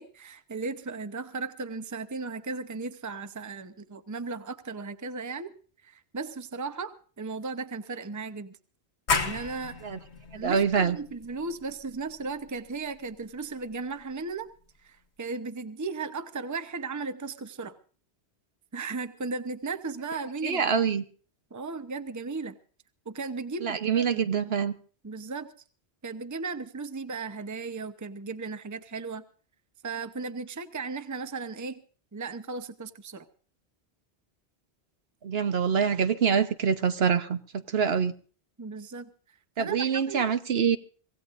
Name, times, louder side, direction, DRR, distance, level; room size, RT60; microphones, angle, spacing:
voice 1, 0.0-5.5 5.8-8.6 9.1-9.8 10.3-14.5 14.8-17.8 18.7-20.8 21.5-22.6 23.1-24.5 25.0-25.5 26.0-29.2 29.8-31.8 32.1-33.3 38.6-39.1 39.6-40.3, right 4 dB, 20° right, 0.7 m, -36 dB
sound 1, 9.1-14.5, left 4 dB, 85° left, 1.8 m, -35 dB
voice 2, 10.3-11.0 20.4-21.0 23.6-24.7 35.2-38.1 39.6-40.8, right 6 dB, 65° right, 1.2 m, -25 dB
25.0 x 16.5 x 2.5 m
omnidirectional pair, 1.1 m